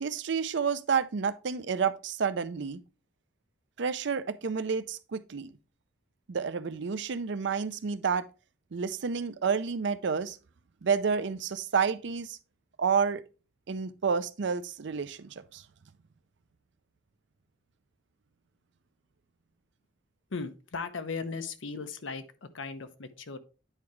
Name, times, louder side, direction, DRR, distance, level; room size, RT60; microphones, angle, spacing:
voice 1, 0.0-2.8 3.8-5.5 6.3-8.2 8.7-10.4 10.8-12.4 12.8-13.2 13.7-15.6, right 6 dB, 65° right, 0.5 m, -30 dB
voice 2, 20.3-23.4, left 4 dB, 85° left, 0.8 m, -37 dB
9.0 x 4.8 x 3.1 m
head